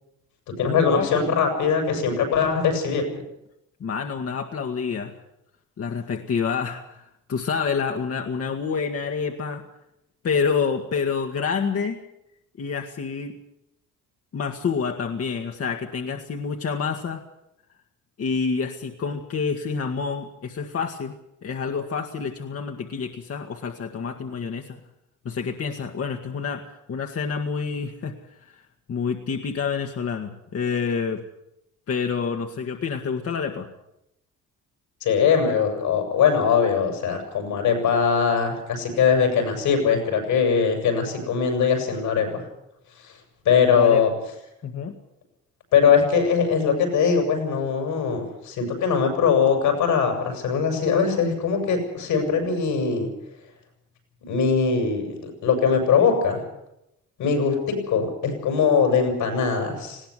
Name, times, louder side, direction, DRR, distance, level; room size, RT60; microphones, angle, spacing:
voice 1, 0.5-3.0 35.0-42.4 43.5-44.1 45.7-53.1 54.3-56.4 57.2-60.0, left 6 dB, 85° left, 4 dB, 7.0 m, -21 dB
voice 2, 3.8-5.2 5.8-9.6 10.2-12.0 12.6-13.4 14.3-17.2 18.2-21.1 21.4-24.8 25.3-28.6 28.9-31.2 31.9-33.7 43.7-44.0 44.6-45.0, left 5 dB, 50° left, 3 dB, 1.8 m, -28 dB
20.0 x 17.0 x 8.2 m, 0.84 s
cardioid pair, 90°, 30 cm